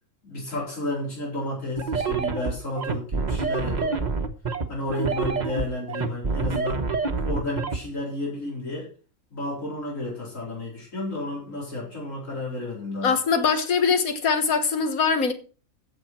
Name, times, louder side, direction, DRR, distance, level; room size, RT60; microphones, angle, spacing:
voice 1, 0.2-4.0 4.7-6.8 7.2-8.9 9.3-13.1, left 2 dB, 65° left, 4.9 m, -32 dB
sound 1, 1.8-7.8, right 4 dB, 35° right, 1.1 m, -27 dB
voice 2, 13.0-15.3, left 5 dB, 85° left, 1.8 m, -22 dB
15.5 x 6.7 x 4.5 m
omnidirectional pair, 1.4 m